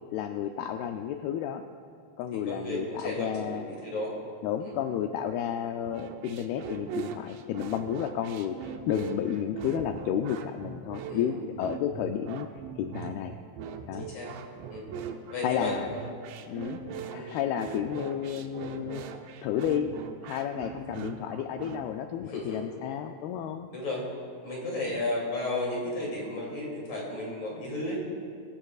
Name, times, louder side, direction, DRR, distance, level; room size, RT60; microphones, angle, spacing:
voice 1, 0.1-1.6 2.2-3.6 4.4-12.5 12.8-13.4 13.9-14.1 15.4-15.9 16.5-16.8 17.1-19.0 19.4-19.9 20.2-23.7, left 9 dB, 85° left, 6 dB, 2.2 m, -32 dB
voice 2, 2.5-4.1 4.6-4.8 11.1-11.4 13.9-14.3 14.7-14.9 15.3-15.7 17.1-17.3 22.2-22.7 23.7-24.1 24.4-28.0, left 2 dB, 45° left, -3 dB, 3.6 m, -33 dB
sound 1, 5.9-21.8, right 7 dB, 80° right, 2.9 m, -40 dB
24.0 x 15.0 x 2.4 m, 2.5 s
omnidirectional pair, 5.0 m